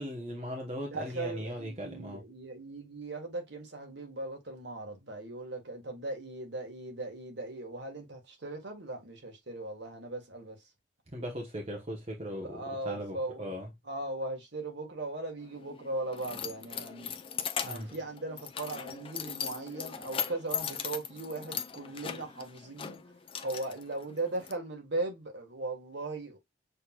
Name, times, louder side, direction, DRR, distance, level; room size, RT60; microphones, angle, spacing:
voice 1, 0.0-2.2 11.1-13.7 17.6-17.9, equal, 30° right, 1.0 m, -39 dB
voice 2, 0.9-10.7 12.4-13.5 13.8-17.2 17.6-23.2 23.4-26.4, right 2 dB, 60° right, 1.5 m, -38 dB
Keys jangling, 15.4-24.5, left 7 dB, 25° left, 0.4 m, -39 dB
6.5 x 3.0 x 2.3 m
head